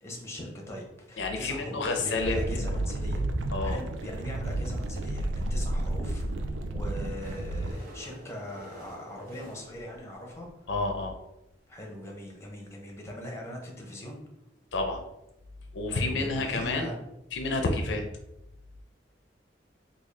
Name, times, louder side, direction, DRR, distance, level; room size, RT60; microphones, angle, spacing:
voice 1, 0.0-3.2 3.6-10.5 11.7-14.2 15.9-17.0, left 1 dB, 15° left, 0 dB, 0.7 m, -41 dB
voice 2, 1.2-2.4 3.5-3.8 10.7-11.1 14.7-15.0 15.7-16.9 17.3-18.0, left 2 dB, 75° left, 4 dB, 0.5 m, -29 dB
sound 1, 2.2-7.7, right 1 dB, 85° right, 0.4 m, -31 dB
sound 2, 7.2-11.1 11.8-11.9 12.0-12.1 12.3-12.4 12.8-12.9, equal, 55° right, 0.7 m, -50 dB
3.6 x 2.3 x 3.2 m, 0.90 s
head